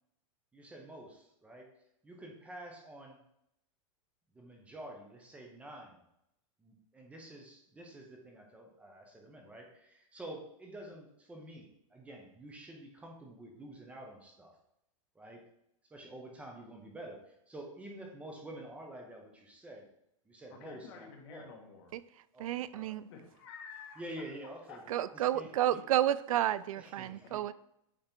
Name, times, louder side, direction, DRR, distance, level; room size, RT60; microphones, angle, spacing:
voice 1, 0.5-1.7 2.0-3.2 4.3-6.0 6.6-14.5 15.1-15.4 15.9-19.9 20.3-21.5 22.3-23.0 24.0-25.8 26.8-27.4, right 1 dB, 10° right, 1 dB, 1.0 m, -49 dB
voice 2, 20.5-21.9 23.1-24.0 24.7-25.3 27.2-27.4, left 5 dB, 50° left, 1 dB, 1.5 m, -50 dB
voice 3, 22.4-23.1 24.9-27.5, right 12 dB, 90° right, 16 dB, 0.4 m, -31 dB
8.9 x 3.3 x 4.5 m, 0.79 s
supercardioid pair, 165°, 17 cm